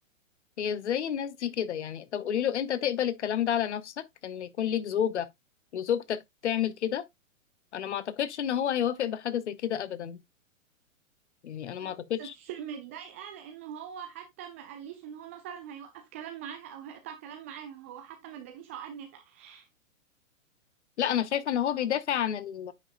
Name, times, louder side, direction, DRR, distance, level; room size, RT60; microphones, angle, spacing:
voice 1, 0.6-3.9 4.2-5.3 5.7-7.0 7.7-10.2 11.4-12.3 21.0-22.7, left 9 dB, 55° left, 0.9 m, -30 dB
voice 2, 12.2-19.7, right 9 dB, 10° right, 0.3 m, -43 dB
9.6 x 5.2 x 2.4 m
figure-of-eight pair, 110°, 40 cm